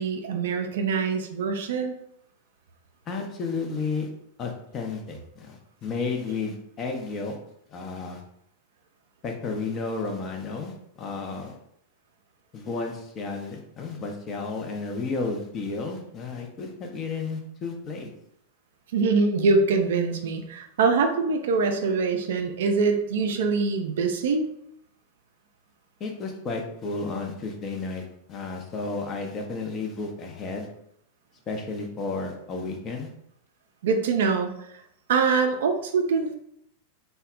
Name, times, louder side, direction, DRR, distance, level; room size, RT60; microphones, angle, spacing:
voice 1, 0.0-1.9 18.9-24.5 33.8-34.5 35.1-36.3, right 4 dB, 60° right, 5 dB, 0.3 m, -24 dB
voice 2, 3.1-4.1 4.4-7.4 7.7-8.2 9.2-11.6 12.5-18.1 26.0-30.7 31.5-33.1, left 4 dB, 30° left, 2 dB, 0.5 m, -32 dB
2.1 x 2.0 x 3.7 m, 0.74 s
figure-of-eight pair, 90°, 0 cm